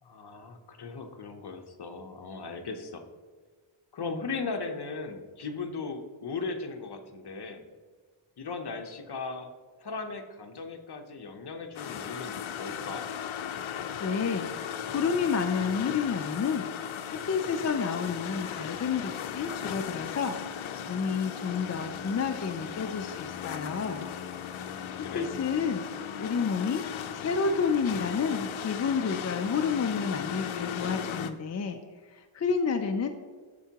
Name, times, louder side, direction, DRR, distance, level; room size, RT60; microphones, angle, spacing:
voice 1, 0.0-3.0 3.9-7.6 8.4-9.5 9.8-13.0 24.7-25.3, left 4 dB, 55° left, 5 dB, 0.9 m, -37 dB
sound 1, 11.7-31.3, left 8 dB, 75° left, 0.6 m, -37 dB
voice 2, 14.0-14.5 14.9-16.7 17.1-24.1 25.0-26.8 27.1-31.8 32.1-33.1, left 5 dB, 35° left, 5 dB, 0.4 m, -30 dB
13.0 x 4.5 x 2.9 m, 1.5 s
wide cardioid pair, 140°, 48 cm